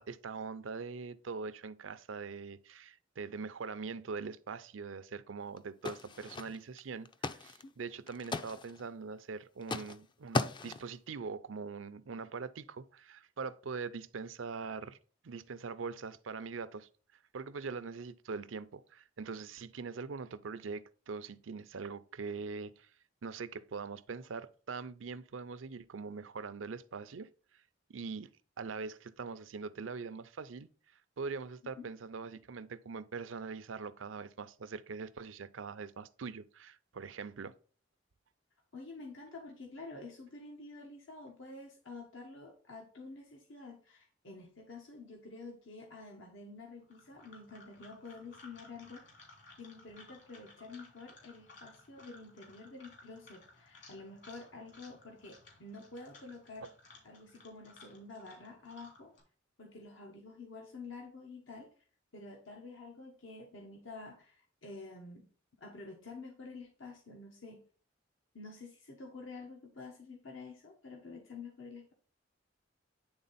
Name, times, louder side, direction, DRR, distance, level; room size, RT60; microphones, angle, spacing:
voice 1, 0.0-15.0 15.2-16.9 17.3-22.9 23.2-27.3 27.9-28.3 28.6-30.7 31.2-37.5, right 5 dB, 85° right, 0.5 m, -42 dB
sound 1, 5.6-5.7 5.8-6.8 7.0-7.6 7.9-8.8 9.6-10.0 10.3-10.9, left 3 dB, 25° left, 0.4 m, -37 dB
voice 2, 38.7-49.3 49.6-56.7 57.0-59.1 59.6-61.7 62.1-65.3 65.6-67.6 68.3-71.9, left 3 dB, 80° left, 1.3 m, -49 dB
sound 2, 46.8-59.2, left 2 dB, 65° left, 2.9 m, -58 dB
9.6 x 3.7 x 4.1 m
head